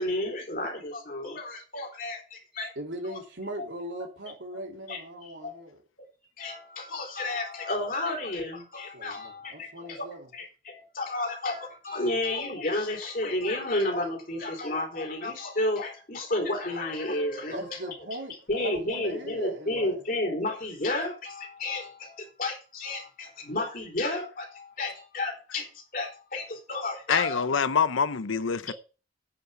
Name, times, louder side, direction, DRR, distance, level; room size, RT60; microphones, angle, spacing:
voice 1, 0.0-2.7 3.1-3.2 4.9-5.6 6.4-10.1 10.3-17.9 18.5-27.4 28.7-28.8, left 2 dB, 45° left, 4.0 m, -32 dB
voice 2, 2.8-5.8 8.9-10.3 17.5-20.0, right 1 dB, 70° right, 3.5 m, -39 dB
voice 3, 27.1-28.7, left 6 dB, 90° left, 0.7 m, -25 dB
9.7 x 5.7 x 8.2 m
head